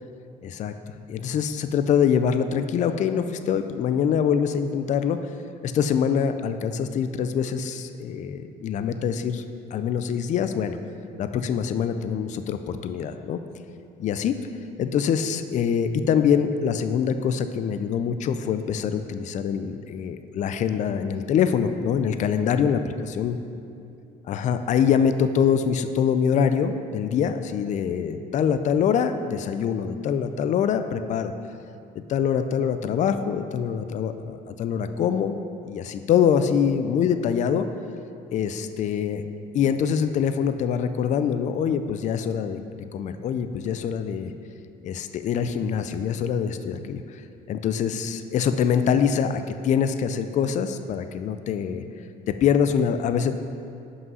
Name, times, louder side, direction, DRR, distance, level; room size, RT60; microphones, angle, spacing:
voice 1, 0.4-0.7 1.1-5.2 5.6-9.4 9.7-10.8 11.2-13.4 14.0-14.4 14.8-22.8 23.2-23.4 24.3-31.3 32.1-37.7 38.3-39.2 39.5-42.6 42.9-44.3 44.8-47.2 47.5-51.8 52.3-53.3, left 7 dB, 45° left, 9 dB, 0.4 m, -24 dB
5.6 x 5.4 x 5.4 m, 2.6 s
cardioid pair, 110°, 17 cm